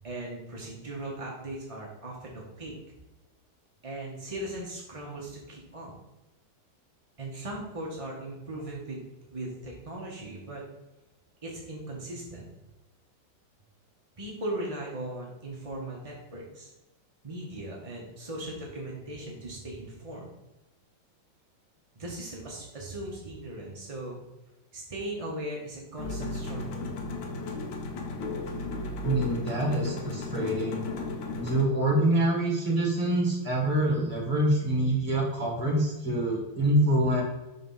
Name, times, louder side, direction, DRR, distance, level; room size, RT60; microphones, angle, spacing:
voice 1, 0.0-2.7 3.8-5.9 7.2-10.6 11.4-12.5 14.2-16.7 17.2-20.3 21.9-24.2 24.7-26.9, right 1 dB, 35° right, -3 dB, 0.5 m, -38 dB
sound 1, 26.0-31.6, left 3 dB, 80° left, 1.7 m, -34 dB
voice 2, 29.0-30.8 31.3-37.2, right 1 dB, 20° right, -3 dB, 1.7 m, -26 dB
5.4 x 3.9 x 5.5 m, 1.0 s
omnidirectional pair, 2.3 m